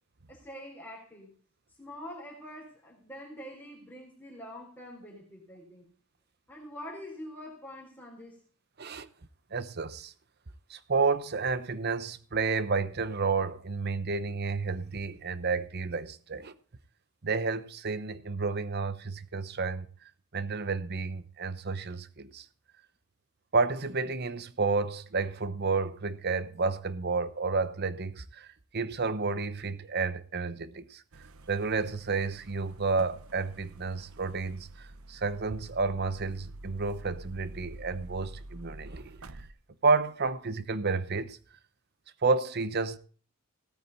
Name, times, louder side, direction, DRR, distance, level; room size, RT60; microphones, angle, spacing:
voice 1, 0.3-1.3 1.8-5.9 6.5-8.4, equal, 10° left, 4.0 m, -45 dB
voice 2, 9.5-10.1 10.7-16.5 17.2-19.9 20.3-22.4 23.5-28.5 28.7-31.0 31.5-39.2 39.8-41.4 42.2-43.0, right 4 dB, 50° right, 0.9 m, -30 dB
sound 1, 31.1-39.5, right 1 dB, 75° right, 1.0 m, -48 dB
17.0 x 9.2 x 4.0 m
head